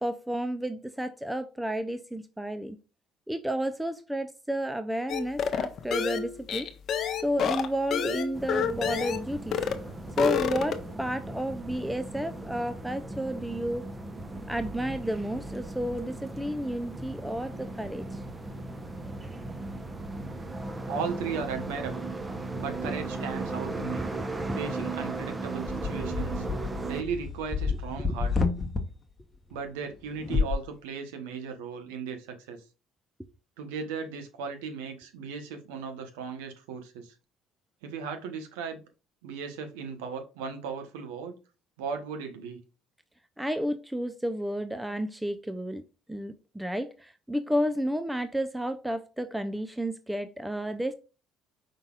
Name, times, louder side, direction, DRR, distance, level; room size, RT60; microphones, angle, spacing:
voice 1, 0.0-2.8 3.3-6.7 7.2-9.6 10.2-13.9 14.5-18.2 22.8-22.9 23.7-24.9 28.1-28.2 43.4-50.9, equal, 5° right, 0.6 m, -32 dB
sound 1, 5.1-9.2 9.5-9.8 10.1-10.9, left 7 dB, 55° left, 0.8 m, -29 dB
sound 2, 8.3-27.0, right 2 dB, 20° right, 0.9 m, -37 dB
voice 2, 20.9-22.1 22.6-24.1 24.6-26.5 26.9-28.3 29.5-32.6 33.6-37.1 37.8-38.8 39.2-41.4 41.8-42.6, right 5 dB, 80° right, 1.0 m, -36 dB
sound 3, 25.7-28.8 30.2-30.6, left 4 dB, 35° left, 1.0 m, -29 dB
5.4 x 3.9 x 2.4 m
hypercardioid pair, 65°, 0 cm